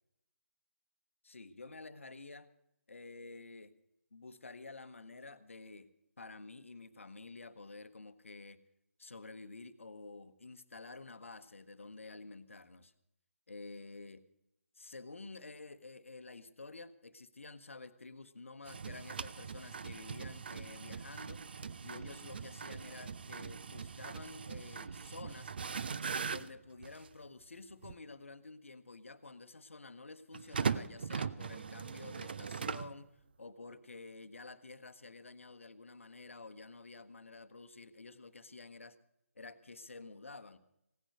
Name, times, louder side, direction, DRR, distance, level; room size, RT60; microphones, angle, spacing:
voice 1, 1.2-2.5 2.9-3.7 4.1-5.9 6.2-8.6 9.0-12.9 13.5-14.2 14.8-21.4 21.8-25.5 26.2-39.0 39.4-40.6, left 3 dB, 65° left, 12 dB, 1.0 m, -50 dB
sound 1, 18.7-27.2 27.8-27.9 30.3-33.0, right 6 dB, 45° right, 0.5 m, -40 dB
17.0 x 10.0 x 6.6 m, 0.81 s
figure-of-eight pair, 145°, 8 cm